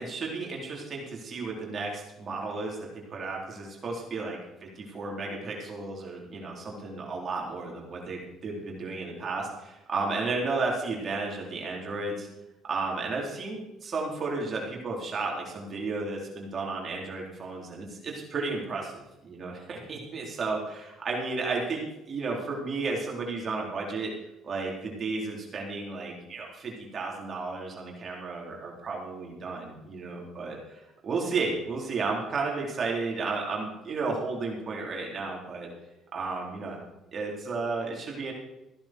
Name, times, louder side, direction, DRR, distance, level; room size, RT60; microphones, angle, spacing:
voice 1, 0.0-12.3 12.7-24.1 24.4-35.7 36.1-36.8 37.1-38.3, right 3 dB, 45° right, -2 dB, 4.1 m, -33 dB
15.5 x 10.5 x 4.7 m, 0.95 s
supercardioid pair, 80°, 0 cm